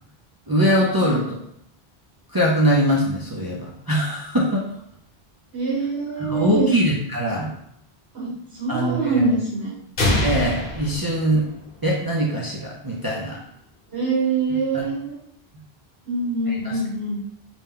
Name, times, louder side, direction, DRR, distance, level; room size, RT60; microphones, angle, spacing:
voice 1, 0.5-1.4 2.3-4.7 6.2-7.5 8.7-9.3 10.2-11.4 11.8-13.4 14.7-14.8 16.5-16.8, equal, 30° right, -4 dB, 0.4 m, -22 dB
voice 2, 5.5-6.7 8.1-8.3 8.6-9.7 13.9-15.2 16.1-17.2, right 3 dB, 80° right, -5 dB, 1.6 m, -24 dB
sound 1, 10.0-11.9, left 1 dB, 60° left, 1.1 m, -24 dB
4.0 x 2.2 x 3.6 m, 0.73 s
omnidirectional pair, 1.0 m